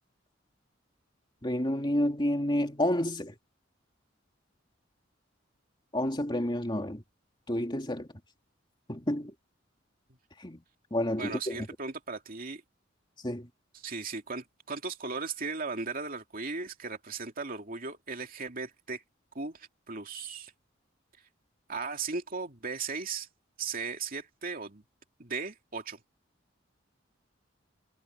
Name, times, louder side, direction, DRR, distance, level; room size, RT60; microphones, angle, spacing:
voice 1, 1.4-3.3 5.9-7.0 7.5-8.1 8.9-9.3 10.4-10.6 10.9-11.6 13.2-13.5, left 1 dB, 25° left, 2.9 m, -29 dB
voice 2, 11.2-12.6 13.7-19.0 19.3-20.5 21.7-23.3 23.6-24.8 25.2-26.0, right 4 dB, 45° right, 2.7 m, -37 dB
head